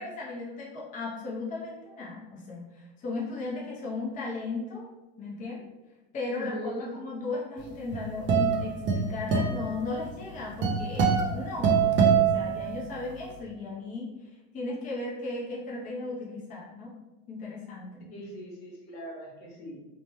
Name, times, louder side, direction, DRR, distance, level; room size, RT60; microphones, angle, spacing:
voice 1, 0.0-4.9 5.2-5.6 6.1-14.1 14.5-16.9 17.3-18.1, left 3 dB, 25° left, -4 dB, 0.6 m, -36 dB
voice 2, 6.3-6.9 18.1-19.8, left 1 dB, 70° left, -2 dB, 1.2 m, -39 dB
sound 1, 7.7-13.1, right 6 dB, 40° right, 0.5 m, -25 dB
3.2 x 2.1 x 2.9 m, 1.1 s
supercardioid pair, 125°, 31 cm